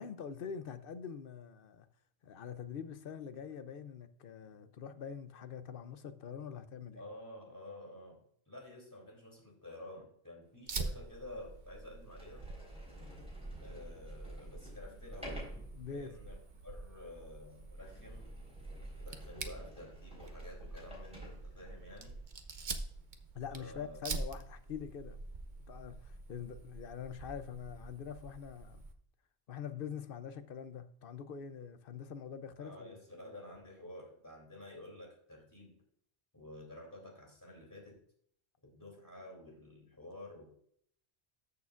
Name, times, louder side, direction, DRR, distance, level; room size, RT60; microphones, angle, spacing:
voice 1, 0.0-1.9 2.2-7.0 15.8-16.2 23.3-25.2 25.7-28.8 29.5-33.0, left 7 dB, 60° left, 0.8 m, -44 dB
voice 2, 6.9-8.2 8.5-12.4 13.6-15.4 15.8-18.3 19.0-22.2 23.5-24.0 32.6-35.8 36.3-38.0 38.6-40.5, left 1 dB, 15° left, 3.0 m, -51 dB
Fire, 10.7-28.9, right 3 dB, 50° right, 0.9 m, -46 dB
Sliding door, 11.5-11.6 12.1-22.0, right 1 dB, 5° right, 4.1 m, -50 dB
13.5 x 6.7 x 2.5 m
omnidirectional pair, 1.1 m